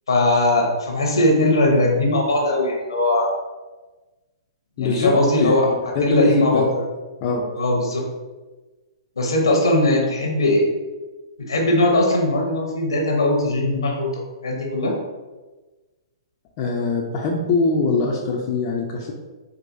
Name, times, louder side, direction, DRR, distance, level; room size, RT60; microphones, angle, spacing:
voice 1, 0.1-3.3 4.8-5.7 6.0-6.8 7.6-8.0 9.2-10.6 11.4-15.0, left 1 dB, 75° left, 0 dB, 0.8 m, -19 dB
voice 2, 4.8-6.7 7.2-7.5 16.6-19.1, left 3 dB, 40° left, -1 dB, 0.4 m, -23 dB
3.8 x 2.6 x 2.5 m, 1.2 s
figure-of-eight pair, 115°, 2 cm